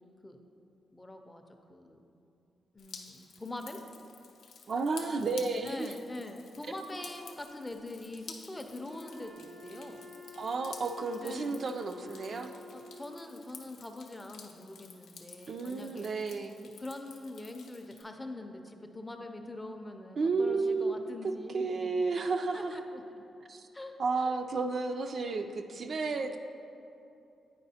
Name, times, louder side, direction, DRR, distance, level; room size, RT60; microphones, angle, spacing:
voice 1, 0.9-2.0 2.7-3.8 5.6-10.1 11.2-11.7 12.7-16.1 16.6-21.9 22.5-23.0 23.7-24.3, left 2 dB, 15° left, 4 dB, 0.4 m, -44 dB
Drip, 2.8-18.0, left 5 dB, 90° left, 0.5 m, -52 dB
voice 2, 4.7-5.9 10.4-12.5 15.5-16.6 20.2-22.8 23.5-23.7 24.0-26.4, right 4 dB, 55° right, 6 dB, 0.3 m, -32 dB
Wind instrument woodwind instrument, 8.9-13.2, left 3 dB, 75° right, 0.7 m, -50 dB
9.2 x 4.7 x 2.7 m, 2.7 s
cardioid pair, 110°, 0 cm